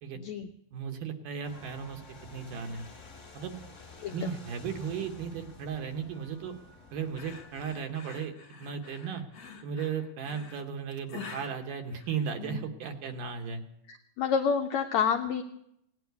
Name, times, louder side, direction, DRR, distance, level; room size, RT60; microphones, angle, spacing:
voice 1, 0.7-2.0 2.3-2.8 3.3-3.6 4.1-6.5 6.9-8.3 8.6-9.2 9.6-13.6, right 6 dB, 70° right, 5 dB, 2.6 m, -35 dB
sound 1, 1.4-7.8, left 3 dB, 25° left, 1.8 m, -51 dB
sound 2, 7.1-12.7, left 5 dB, 50° left, 2.3 m, -47 dB
voice 2, 14.2-15.4, left 6 dB, 85° left, 5 dB, 1.6 m, -28 dB
18.0 x 9.3 x 8.2 m, 0.78 s
omnidirectional pair, 4.1 m